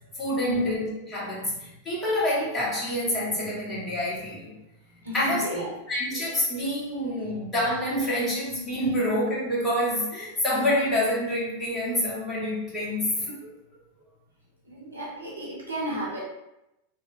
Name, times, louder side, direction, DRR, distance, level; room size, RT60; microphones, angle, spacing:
voice 1, 0.2-4.5 5.1-13.4, left 1 dB, 20° left, -7 dB, 1.2 m, -27 dB
voice 2, 4.9-5.7 7.3-7.4 14.6-16.2, equal, 80° right, -5 dB, 0.7 m, -34 dB
2.8 x 2.4 x 2.8 m, 0.91 s
figure-of-eight pair, 90°, 0 cm